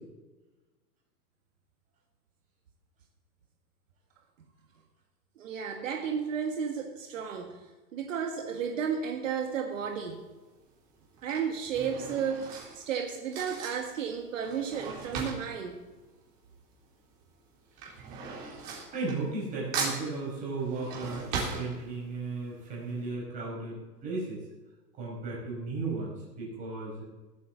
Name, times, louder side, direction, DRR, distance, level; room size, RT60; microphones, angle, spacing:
voice 1, 5.4-7.6 7.9-10.2 11.2-15.8, right 7 dB, 50° right, 3 dB, 1.7 m, -33 dB
Drawer open or close / Cutlery silverware, 9.7-10.1 11.0-16.8 17.1-19.5 19.7-22.3 22.7-22.8 23.0-23.1, right 5 dB, 30° right, 4.0 m, -38 dB
voice 2, 18.9-24.4 25.0-27.0, right 3 dB, 15° right, -5 dB, 4.9 m, -35 dB
18.0 x 8.5 x 7.2 m, 1.2 s
hypercardioid pair, 175°, 49 cm